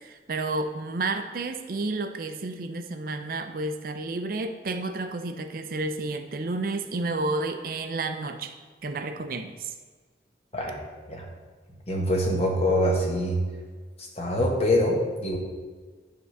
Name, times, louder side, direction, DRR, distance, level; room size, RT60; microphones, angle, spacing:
voice 1, 0.0-8.5 8.8-9.7, right 2 dB, 50° right, 7 dB, 0.5 m, -31 dB
voice 2, 11.9-13.4 14.0-15.4, left 1 dB, 35° left, -1 dB, 1.5 m, -24 dB
9.4 x 3.7 x 6.6 m, 1.5 s
head